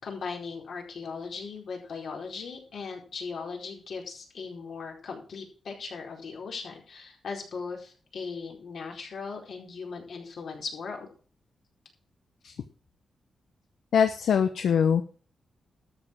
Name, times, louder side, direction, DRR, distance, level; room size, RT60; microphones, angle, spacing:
voice 1, 0.0-11.1, left 5 dB, 65° left, 1 dB, 4.5 m, -38 dB
voice 2, 13.9-15.0, left 7 dB, 80° left, 8 dB, 1.0 m, -23 dB
13.0 x 7.3 x 6.2 m, 0.40 s
wide cardioid pair, 140°, 0 cm